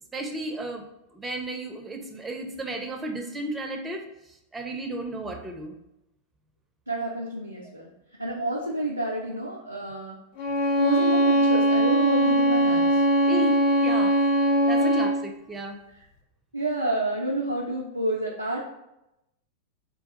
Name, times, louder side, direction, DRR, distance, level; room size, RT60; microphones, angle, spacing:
voice 1, 0.1-0.8 1.1-4.0 4.5-5.8 13.3-14.1 14.7-15.8, right 2 dB, 15° right, 3 dB, 0.5 m, -33 dB
voice 2, 6.9-7.9 8.2-10.2 10.8-13.0 14.6-14.9 16.5-18.7, right 1 dB, 90° right, -4 dB, 0.3 m, -29 dB
Bowed string instrument, 10.4-15.2, right 1 dB, 45° left, 0.4 m, -21 dB
3.3 x 2.3 x 2.8 m, 0.88 s
figure-of-eight pair, 90°, 0 cm